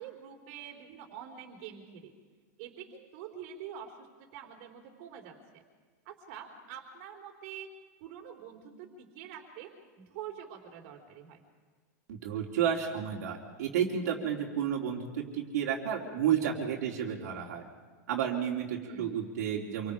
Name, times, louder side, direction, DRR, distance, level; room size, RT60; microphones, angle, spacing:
voice 1, 0.0-2.1 2.6-5.6 6.1-7.7 8.0-11.4 18.8-19.2, right 8 dB, 45° right, 1 dB, 3.5 m, -46 dB
voice 2, 12.1-17.6 18.1-19.9, right 8 dB, 70° right, -1 dB, 3.3 m, -31 dB
27.5 x 24.0 x 4.9 m, 1.5 s
supercardioid pair, 165°, 9 cm